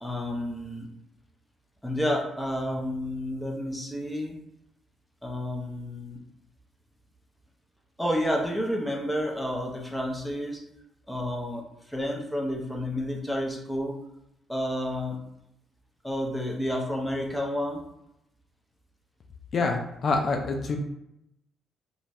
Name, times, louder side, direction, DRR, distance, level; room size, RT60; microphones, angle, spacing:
voice 1, 0.0-0.9 1.8-4.3 5.2-6.2 8.0-10.6 11.1-13.9 14.5-15.2 16.0-17.8, equal, 5° left, -1 dB, 0.7 m, -30 dB
voice 2, 19.5-20.8, left 3 dB, 50° left, 2 dB, 0.3 m, -26 dB
2.5 x 2.3 x 3.1 m, 0.82 s
cardioid pair, 90°, 0 cm